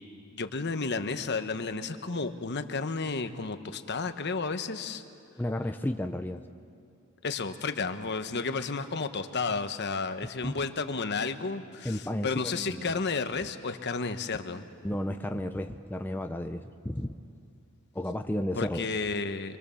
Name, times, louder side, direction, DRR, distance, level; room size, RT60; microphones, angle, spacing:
voice 1, 0.3-5.0 7.2-14.7 18.6-19.6, left 4 dB, 55° left, 9 dB, 1.1 m, -32 dB
voice 2, 5.4-6.5 10.4-10.6 11.8-12.8 14.8-17.1 17.9-18.9, left 1 dB, 10° left, 6 dB, 0.6 m, -33 dB
25.5 x 24.0 x 7.0 m, 2.4 s
head